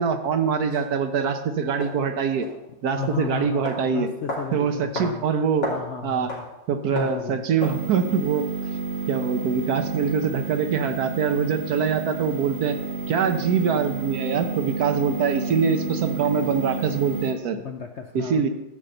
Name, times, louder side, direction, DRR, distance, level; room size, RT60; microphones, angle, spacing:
voice 1, 0.0-2.4 2.8-4.1 4.5-5.7 6.0-6.3 6.7-8.5 9.1-12.8 13.1-17.6 18.1-18.5, right 6 dB, 65° right, 7 dB, 1.3 m, -24 dB
sound 1, 0.7-0.8 1.8-1.9 2.4-2.6 3.0-3.2 3.6-3.8 4.3-4.5 5.0-5.1 5.4-5.9 6.3-6.5 7.0-7.2 7.6-7.8, left 1 dB, 85° left, 3.3 m, -31 dB
voice 2, 2.9-5.3 5.7-6.5 6.9-7.5 17.5-18.5, left 6 dB, 60° left, 4 dB, 0.7 m, -34 dB
sound 2, 7.6-17.3, right 4 dB, 40° right, 1.3 m, -31 dB
11.5 x 4.1 x 7.8 m, 0.97 s
omnidirectional pair, 1.9 m